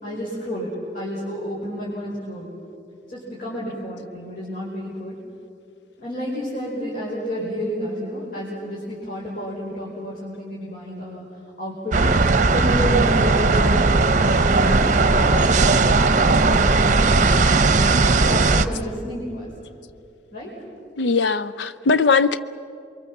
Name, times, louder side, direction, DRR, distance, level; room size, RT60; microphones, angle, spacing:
voice 1, 0.0-2.5 3.1-5.2 6.0-11.2 11.6-18.0 18.3-19.5 20.3-20.5, equal, 50° left, -6 dB, 4.9 m, -30 dB
sound 1, 11.9-18.7, right 3 dB, 45° right, 0.8 m, -17 dB
voice 2, 21.0-22.4, left 4 dB, 75° left, 12 dB, 0.5 m, -19 dB
28.0 x 23.5 x 7.2 m, 2.6 s
head